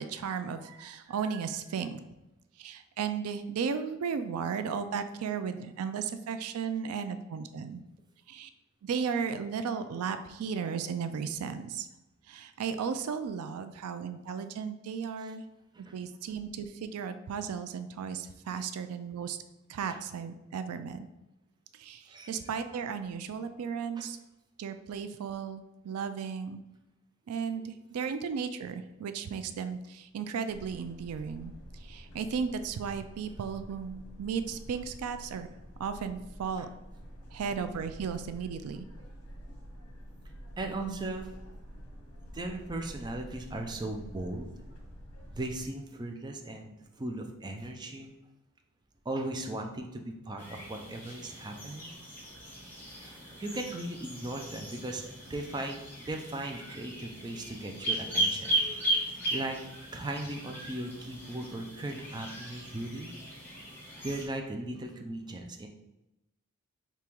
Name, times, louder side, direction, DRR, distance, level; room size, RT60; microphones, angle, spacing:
voice 1, 0.0-2.0 2.6-7.8 8.3-8.5 8.8-11.9 12.3-15.4 15.9-19.4 19.7-21.1 21.8-24.2 24.6-26.6 27.3-31.5 31.9-35.5 35.8-36.7 37.3-38.9, right 6 dB, 90° right, 10 dB, 0.4 m, -35 dB
voice 2, 0.6-1.4 15.2-15.3 15.7-15.9 19.9-20.0 22.1-22.3 24.0-24.1 36.6-36.7 40.6-41.3 42.3-44.5 45.3-48.1 49.1-51.9 52.9-58.5 59.0-59.6 59.9-63.1 64.0-65.7, right 2 dB, 20° right, 3 dB, 0.4 m, -38 dB
sound 1, 30.5-45.6, equal, 80° left, 0.9 m, -48 dB
sound 2, 50.4-64.3, right 1 dB, 10° left, 1.1 m, -36 dB
3.5 x 2.9 x 4.5 m, 0.93 s
head